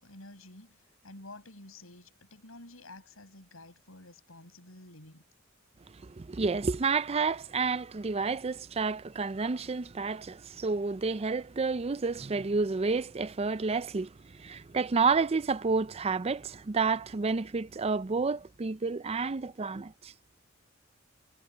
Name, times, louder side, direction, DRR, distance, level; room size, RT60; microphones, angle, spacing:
voice 1, 0.0-5.2, left 2 dB, 85° left, 6.7 m, -50 dB
voice 2, 6.0-14.1 14.4-20.1, right 4 dB, 30° right, 0.5 m, -30 dB
head